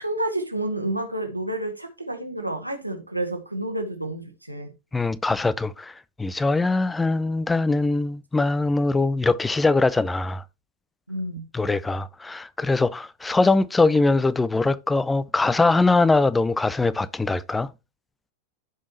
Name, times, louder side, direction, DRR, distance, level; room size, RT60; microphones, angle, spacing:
voice 1, 0.0-4.7 11.1-11.5, right 1 dB, 90° right, 1.8 m, -29 dB
voice 2, 4.9-5.9 6.2-10.4 11.5-17.7, left 3 dB, 10° left, 0.5 m, -22 dB
15.0 x 5.3 x 3.0 m
figure-of-eight pair, 90°, 0 cm